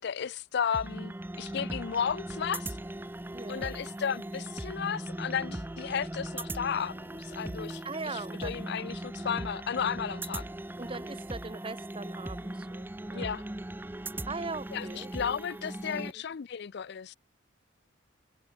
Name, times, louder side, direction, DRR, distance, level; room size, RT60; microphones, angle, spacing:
voice 1, 0.0-2.7 3.5-7.8 8.4-10.4 13.1-13.4 14.7-17.2, left 7 dB, 55° left, 0.4 m, -33 dB
sound 1, 0.7-16.1, right 1 dB, 10° right, 0.5 m, -39 dB
voice 2, 3.3-3.7 7.8-8.5 10.8-13.3 14.3-15.1 16.1-16.2, right 3 dB, 30° right, 1.1 m, -40 dB
head